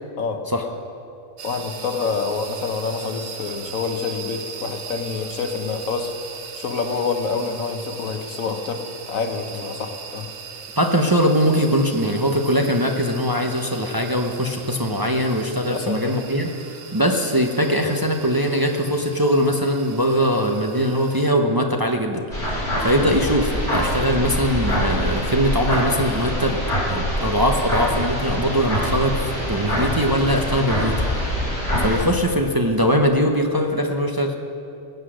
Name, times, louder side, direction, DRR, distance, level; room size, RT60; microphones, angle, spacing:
voice 1, 1.4-6.2 6.6-10.3 15.7-16.2 23.0-23.1, left 5 dB, 85° left, 6 dB, 1.4 m, -27 dB
sound 1, 1.4-21.3, right 6 dB, 80° right, 1.4 m, -39 dB
voice 2, 10.8-16.5 16.9-22.2 22.8-26.6 26.9-29.2 29.4-31.3 31.8-34.3, equal, 20° right, 2 dB, 0.7 m, -21 dB
sound 2, 22.3-32.0, equal, 40° left, 4.0 m, -24 dB
20.0 x 8.2 x 6.3 m, 2.7 s
omnidirectional pair, 1.4 m